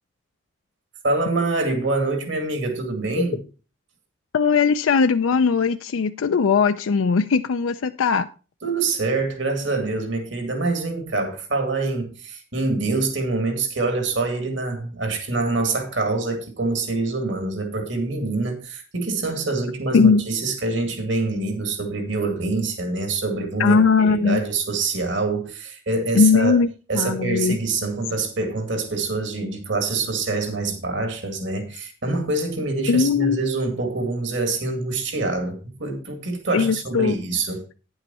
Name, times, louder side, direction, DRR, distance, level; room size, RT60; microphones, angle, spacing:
voice 1, 1.0-3.4 8.6-26.5 26.9-37.7, right 3 dB, 65° right, 2.3 m, -25 dB
voice 2, 4.3-8.3 19.9-20.2 23.6-24.4 26.1-26.7 26.9-27.6 32.9-33.4 36.5-37.2, left 5 dB, 85° left, 0.4 m, -19 dB
10.0 x 7.9 x 4.2 m
head